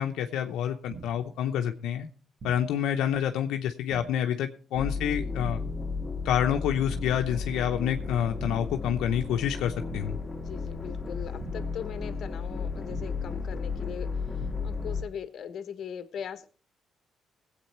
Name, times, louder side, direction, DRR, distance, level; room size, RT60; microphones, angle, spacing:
voice 1, 0.0-2.1 2.4-5.6 6.2-10.2, left 9 dB, 85° left, 5 dB, 0.8 m, -28 dB
sound 1, 0.9-1.4 2.4-2.9 3.9-4.4 5.4-5.9 6.9-7.4 8.4-8.9 9.9-10.4 11.4-11.9 12.9-13.4 14.4-14.9, right 4 dB, 50° right, 1.5 m, -45 dB
sound 2, 4.7-15.0, left 4 dB, 15° left, 2.6 m, -34 dB
voice 2, 10.4-14.1 14.6-16.5, left 8 dB, 65° left, 12 dB, 1.1 m, -40 dB
18.5 x 8.2 x 4.3 m, 0.40 s
cardioid pair, 90°, 0 cm